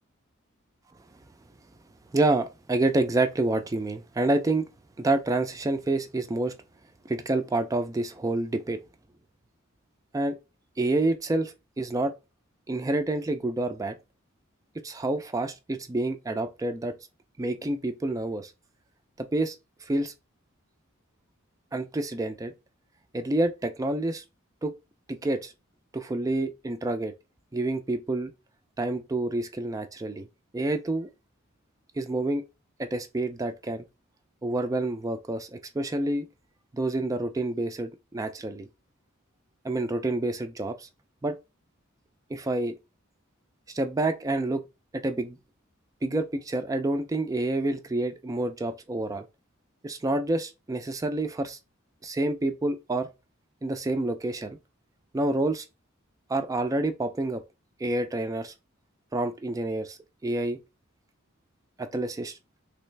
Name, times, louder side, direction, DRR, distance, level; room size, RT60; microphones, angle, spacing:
voice 1, 2.1-4.7 5.0-6.5 7.1-8.8 10.1-10.4 10.8-12.1 12.7-14.0 14.8-16.9 17.4-18.5 19.2-19.5 19.9-20.1 21.7-22.5 23.1-24.2 24.6-24.7 25.1-25.5 25.9-27.1 27.5-28.3 28.8-30.3 30.5-31.1 32.0-32.4 32.8-33.8 34.4-36.3 36.7-38.7 39.6-40.9 41.2-41.4 42.3-42.7 43.7-44.6 44.9-45.4 46.0-49.3 49.8-51.6 52.0-53.1 53.6-54.6 55.1-55.6 56.3-57.4 57.8-58.5 59.1-60.6 61.8-62.4, right 2 dB, 15° right, 0.3 m, -28 dB
3.3 x 3.0 x 3.2 m
head